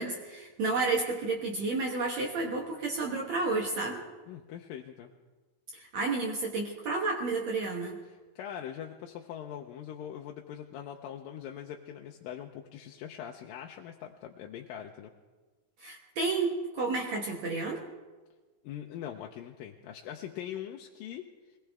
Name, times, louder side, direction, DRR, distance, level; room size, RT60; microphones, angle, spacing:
voice 1, 0.0-4.0 5.7-8.0 15.8-17.8, right 3 dB, 60° right, -1 dB, 2.2 m, -31 dB
voice 2, 4.3-5.1 8.1-15.1 18.6-21.6, left 10 dB, 85° left, 1 dB, 2.5 m, -42 dB
22.5 x 18.5 x 3.5 m, 1.3 s
omnidirectional pair, 3.9 m